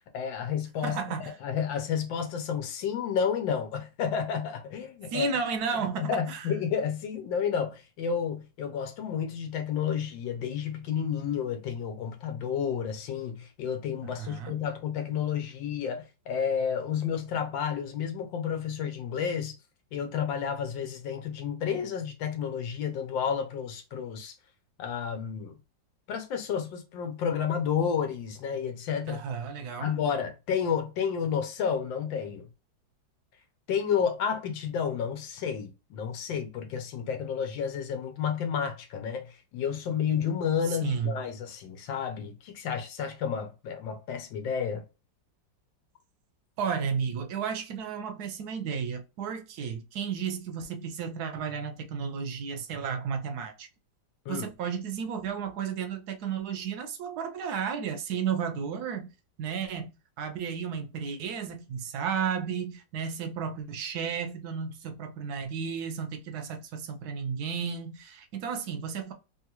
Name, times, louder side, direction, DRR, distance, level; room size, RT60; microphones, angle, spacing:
voice 1, 0.1-1.0 1.4-5.3 6.0-19.6 19.9-24.3 24.8-25.6 26.1-29.2 29.8-32.5 33.7-44.8 54.3-54.5, left 7 dB, 85° left, 1.4 m, -31 dB
voice 2, 0.8-1.3 5.1-6.5 14.0-14.6 29.1-30.0 40.7-41.2 46.6-53.7 54.3-59.1 59.4-69.1, right 6 dB, 70° right, 1.0 m, -33 dB
3.7 x 2.3 x 2.9 m
omnidirectional pair, 2.0 m